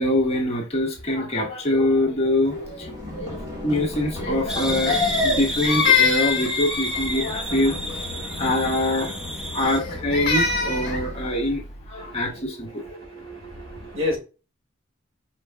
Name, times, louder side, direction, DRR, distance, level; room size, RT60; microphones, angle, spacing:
voice 1, 0.0-3.4 3.6-9.1 9.5-11.6 11.9-12.8, left 1 dB, 30° left, 1.3 m, -24 dB
Run, 2.5-12.2, left 1 dB, 25° right, 1.9 m, -36 dB
sound 1, 4.5-9.8, right 1 dB, ahead, 0.6 m, -31 dB
Crying sobbing, 4.9-7.4 9.6-11.0, left 5 dB, 55° left, 1.4 m, -23 dB
voice 2, 12.0-14.2, left 2 dB, 80° right, 2.0 m, -32 dB
5.1 x 4.4 x 2.2 m
head